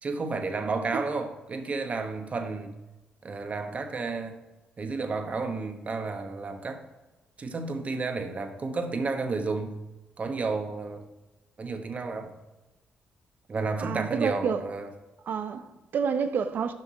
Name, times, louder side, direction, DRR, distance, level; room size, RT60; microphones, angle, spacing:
voice 1, 0.0-2.7 3.2-4.4 4.8-6.8 7.4-9.8 10.2-11.0 11.6-12.4 13.5-14.9, right 3 dB, 40° right, 1.1 m, -31 dB
voice 2, 13.8-14.7 15.3-16.7, right 6 dB, 65° right, 0.7 m, -29 dB
6.6 x 5.9 x 4.1 m
cardioid pair, 70°, 3 cm